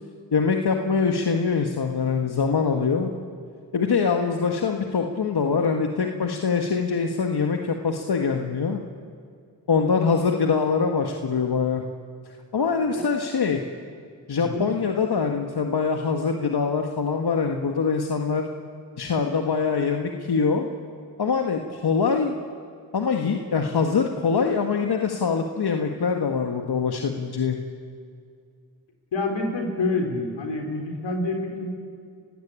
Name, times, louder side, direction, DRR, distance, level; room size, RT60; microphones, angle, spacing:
voice 1, 0.3-3.1 3.7-8.8 9.7-11.8 12.5-13.6 14.3-18.4 19.0-20.7 21.2-22.3 22.9-27.6, left 5 dB, 55° left, 3 dB, 1.7 m, -23 dB
voice 2, 14.4-14.7 29.1-31.7, left 2 dB, 75° left, 2 dB, 4.4 m, -27 dB
30.0 x 16.0 x 8.8 m, 2.3 s
supercardioid pair, 40°, 45 cm